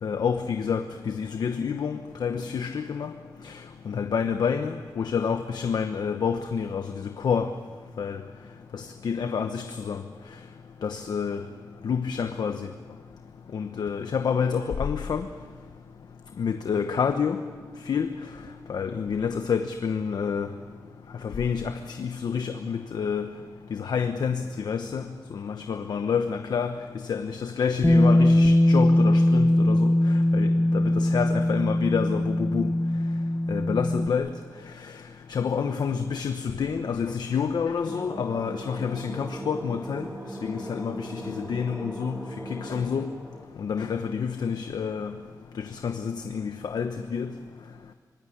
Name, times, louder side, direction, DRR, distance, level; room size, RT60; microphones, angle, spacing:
voice 1, 0.0-3.1 3.4-3.6 3.9-7.5 8.0-8.2 8.7-10.0 10.8-11.4 11.8-12.7 13.5-15.3 16.4-17.4 17.9-18.1 18.7-20.5 21.2-23.3 23.7-25.0 25.3-26.8 27.1-32.7 33.5-34.3 35.3-40.1 40.4-42.2 42.5-43.1 43.6-45.1 45.6-47.3, left 6 dB, 80° left, 7 dB, 1.1 m, -28 dB
Bass guitar, 27.8-34.1, left 1 dB, 10° left, 1.0 m, -21 dB
sound 1, 37.9-43.5, right 1 dB, 10° right, 2.6 m, -39 dB
25.5 x 19.5 x 10.0 m, 1.5 s
wide cardioid pair, 165°, 7 cm